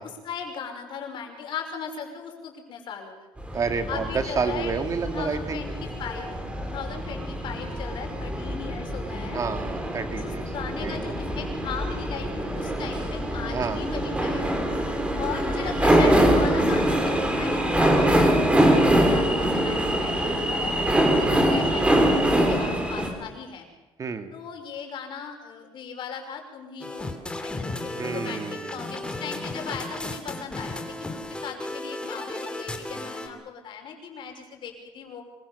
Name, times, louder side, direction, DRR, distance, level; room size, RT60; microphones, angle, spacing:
voice 1, 0.0-3.3 3.9-4.7 5.0-6.3 6.6-9.4 10.2-14.6 15.2-23.7 24.3-27.1 27.4-35.2, left 6 dB, 65° left, 3 dB, 5.6 m, -38 dB
sound 1, 3.4-23.1, right 1 dB, 10° right, 4.8 m, -24 dB
voice 2, 3.5-5.6 9.3-10.4 10.8-11.0 13.5-13.8 24.0-24.3 28.0-29.0, right 5 dB, 40° right, 8 dB, 2.1 m, -29 dB
sound 2, 26.8-33.3, left 2 dB, 10° left, 3.1 m, -34 dB
25.0 x 23.0 x 7.0 m, 1.1 s
cardioid pair, 115°, 9 cm